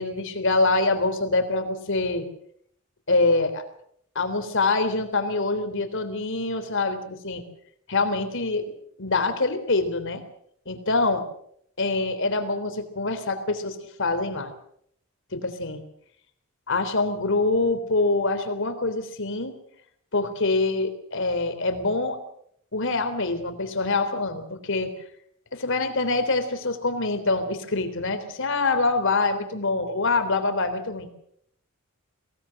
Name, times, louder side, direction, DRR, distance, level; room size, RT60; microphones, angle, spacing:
voice 1, 0.0-2.3 3.1-3.6 4.2-7.4 7.9-8.7 9.0-10.2 10.7-11.2 11.8-14.5 15.3-15.8 16.7-19.6 20.1-22.2 22.7-24.9 25.5-31.1, left 3 dB, 60° left, 8 dB, 3.6 m, -25 dB
24.0 x 18.0 x 7.7 m, 0.68 s
head